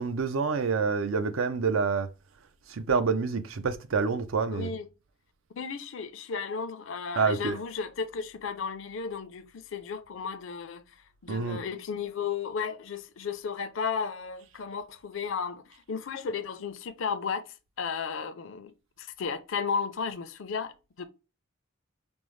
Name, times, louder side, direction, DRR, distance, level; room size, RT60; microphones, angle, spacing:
voice 1, 0.0-2.1 2.7-4.7 7.1-7.6 11.3-11.6, right 5 dB, 75° right, 0.5 m, -27 dB
voice 2, 4.5-4.8 5.6-10.8 11.2-21.1, left 6 dB, 65° left, 0.5 m, -34 dB
5.2 x 2.0 x 3.1 m
head